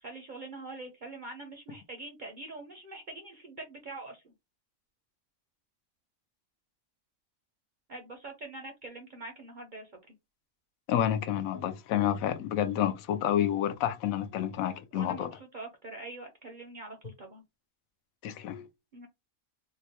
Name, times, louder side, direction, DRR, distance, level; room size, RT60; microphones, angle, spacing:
voice 1, 0.0-4.3 7.9-10.1 14.9-17.4 18.9-19.1, right 2 dB, 55° right, 0.5 m, -44 dB
voice 2, 10.9-15.3 18.2-18.7, left 10 dB, 90° left, 1.0 m, -29 dB
3.7 x 2.1 x 2.8 m
omnidirectional pair, 1.4 m